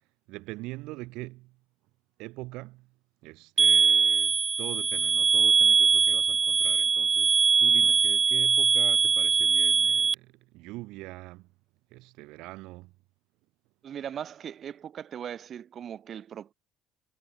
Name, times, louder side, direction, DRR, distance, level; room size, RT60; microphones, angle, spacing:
voice 1, 0.0-1.6 2.2-11.5 11.9-13.0, right 21 dB, 75° right, 7.0 m, -42 dB
sound 1, 3.6-10.1, right 5 dB, 25° right, 0.4 m, -22 dB
voice 2, 13.8-16.5, right 9 dB, 45° right, 3.0 m, -39 dB
cardioid pair, 110°, 0 cm